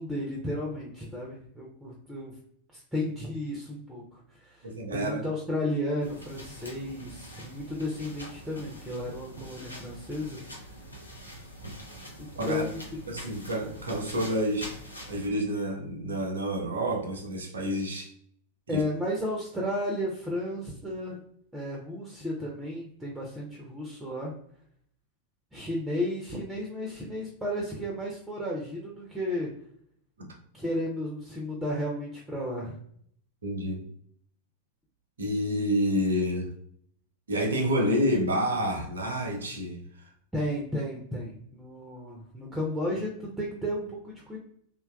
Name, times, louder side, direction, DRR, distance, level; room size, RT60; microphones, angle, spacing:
voice 1, 0.0-2.3 2.7-10.4 12.2-13.0 18.7-21.2 21.5-24.3 25.5-29.5 30.5-32.8 40.3-44.4, left 1 dB, 5° right, -2 dB, 0.5 m, -33 dB
voice 2, 4.6-5.2 12.3-12.6 13.1-14.7 15.1-18.1 18.7-18.8 33.4-33.9 35.2-36.5 37.3-39.8, equal, 70° right, 2 dB, 0.6 m, -28 dB
sound 1, 6.0-15.3, equal, 85° left, 0.5 m, -44 dB
2.8 x 2.2 x 2.3 m, 0.65 s
figure-of-eight pair, 90°, 0 cm